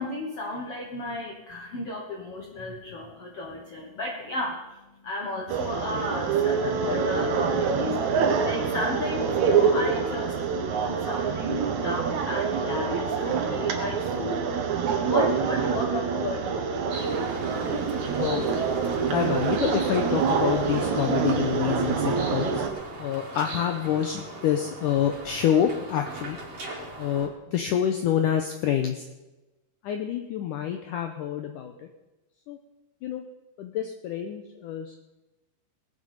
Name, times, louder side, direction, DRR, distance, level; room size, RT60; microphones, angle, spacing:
voice 1, 0.0-17.6, left 2 dB, 70° left, 0 dB, 1.4 m, -34 dB
sound 1, 5.5-22.7, right 5 dB, 60° right, 2.1 m, -26 dB
sound 2, 16.9-27.3, right 2 dB, 45° right, 2.8 m, -39 dB
voice 2, 19.1-22.6 23.0-26.4 27.0-29.1 29.8-31.7 32.5-32.6 33.0-33.2 33.6-35.0, left 9 dB, 90° left, 5 dB, 1.8 m, -27 dB
19.5 x 8.2 x 5.2 m, 1.0 s
omnidirectional pair, 4.7 m